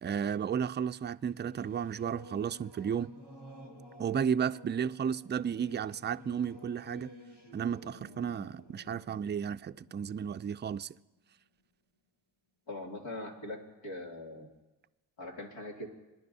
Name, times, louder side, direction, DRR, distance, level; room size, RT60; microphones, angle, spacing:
voice 1, 0.0-3.1 4.0-7.2 7.5-10.9, right 7 dB, 25° right, 0.4 m, -33 dB
Singing / Musical instrument, 1.1-11.2, left 1 dB, 65° left, 2.4 m, -52 dB
voice 2, 12.7-14.5 15.2-15.9, left 1 dB, 85° left, 2.7 m, -41 dB
26.5 x 10.5 x 2.7 m
supercardioid pair, 50°, 44 cm